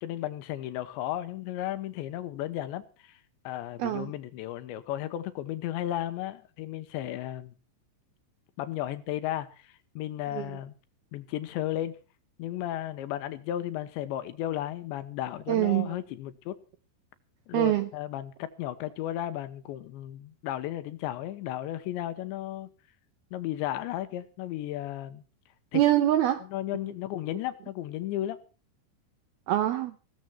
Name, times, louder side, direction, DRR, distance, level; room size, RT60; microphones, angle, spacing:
voice 1, 0.0-3.2 3.4-7.5 8.6-10.7 11.1-12.0 12.4-16.6 17.5-22.7 23.3-25.2 25.7-25.8 26.4-28.4, left 13 dB, 75° left, 3.1 m, -34 dB
voice 2, 3.8-4.1 10.3-10.5 15.5-15.9 17.5-17.9 25.7-26.4 29.5-30.0, right 13 dB, 80° right, 2.2 m, -24 dB
17.0 x 14.5 x 4.5 m
omnidirectional pair, 5.5 m